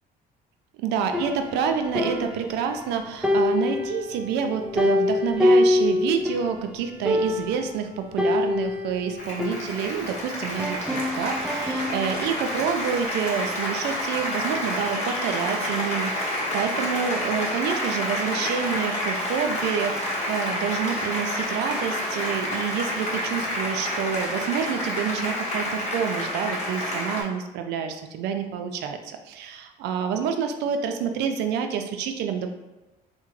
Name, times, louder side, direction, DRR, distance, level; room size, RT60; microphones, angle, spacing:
voice 1, 0.8-32.6, right 7 dB, 85° right, 6 dB, 0.4 m, -28 dB
sound 1, 1.1-2.9 3.2-6.5 6.8-6.9 7.1-7.7 8.2-10.2 10.6-12.3, left 2 dB, 5° right, 0.3 m, -25 dB
Applause, 9.2-27.2, left 1 dB, 40° left, 0.8 m, -29 dB
3.4 x 2.1 x 3.1 m, 1.1 s
cardioid pair, 110°, 17 cm